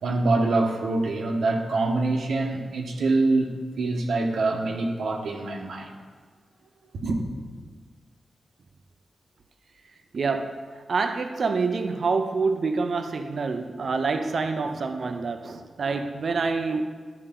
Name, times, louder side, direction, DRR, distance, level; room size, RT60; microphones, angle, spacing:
voice 1, 0.0-5.9 6.9-7.2, right 2 dB, 85° right, 2 dB, 1.1 m, -25 dB
voice 2, 10.1-16.8, right 4 dB, 50° right, 7 dB, 0.5 m, -27 dB
12.5 x 5.5 x 3.7 m, 1.5 s
wide cardioid pair, 170°, 0 cm